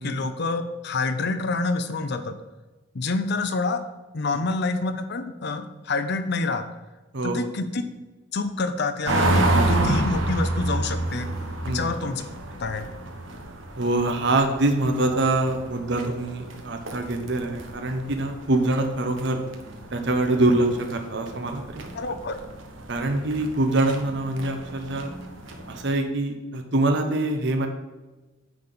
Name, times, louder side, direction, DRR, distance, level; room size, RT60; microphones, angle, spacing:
voice 1, 0.0-2.3 2.9-3.8 4.1-6.6 7.2-7.8 8.3-11.3 11.7-12.2 12.6-12.9 22.0-22.4, left 3 dB, 60° left, 9 dB, 0.6 m, -27 dB
sound 1, 9.1-25.9, right 2 dB, 85° right, 1.2 m, -30 dB
voice 2, 13.8-19.4 19.9-21.9 22.9-25.1 25.7-27.7, right 2 dB, 65° right, 5 dB, 1.0 m, -24 dB
9.5 x 4.1 x 6.8 m, 1.2 s
head